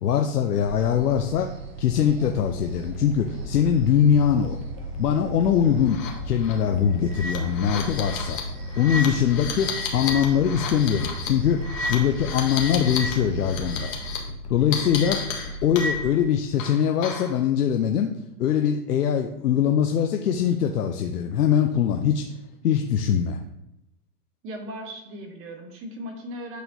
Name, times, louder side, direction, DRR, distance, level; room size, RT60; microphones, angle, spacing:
voice 1, 0.0-1.5 1.8-4.6 5.0-6.0 6.2-8.4 8.8-11.6 11.9-13.9 14.5-15.2 15.6-18.1 18.4-22.2 22.6-23.4, left 8 dB, 85° left, 4 dB, 0.7 m, -22 dB
sound 1, 0.6-14.1, right 4 dB, 45° right, 1.1 m, -40 dB
sound 2, 2.9-16.1, left 1 dB, 15° left, 0.7 m, -37 dB
sound 3, 5.9-6.1 6.4-6.5 7.1-13.1 13.4-14.2 14.7-16.2 16.6-17.4, left 4 dB, 60° left, 1.6 m, -32 dB
voice 2, 24.4-26.6, equal, 30° right, 4 dB, 1.2 m, -37 dB
8.1 x 4.3 x 2.7 m, 0.83 s
hypercardioid pair, 115°, 45 cm